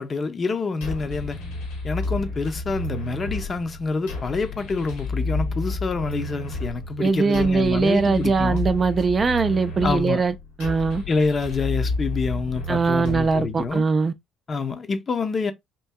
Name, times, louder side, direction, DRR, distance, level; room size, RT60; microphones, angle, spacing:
voice 1, 0.0-1.4 1.8-8.6 9.8-10.2 11.1-13.8 14.5-15.5, left 4 dB, 40° left, 0.6 m, -27 dB
sound 1, 0.8-13.8, left 2 dB, 80° left, 1.4 m, -31 dB
voice 2, 7.0-11.0 12.7-14.1, right 4 dB, 35° right, 0.4 m, -21 dB
4.4 x 2.6 x 2.2 m
hypercardioid pair, 55°, 0 cm